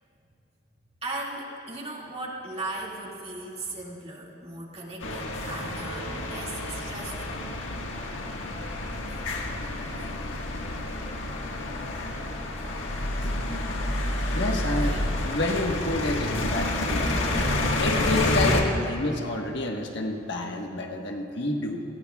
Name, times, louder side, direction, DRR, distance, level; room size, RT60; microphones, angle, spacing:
voice 1, 1.0-7.4 14.7-15.0, right 2 dB, 30° right, -3 dB, 2.2 m, -37 dB
sound 1, 5.0-18.6, left 2 dB, 90° left, 1.6 m, -29 dB
voice 2, 14.3-17.2 17.8-21.8, left 1 dB, 65° left, 1 dB, 1.4 m, -29 dB
27.5 x 19.0 x 2.4 m, 2.8 s
head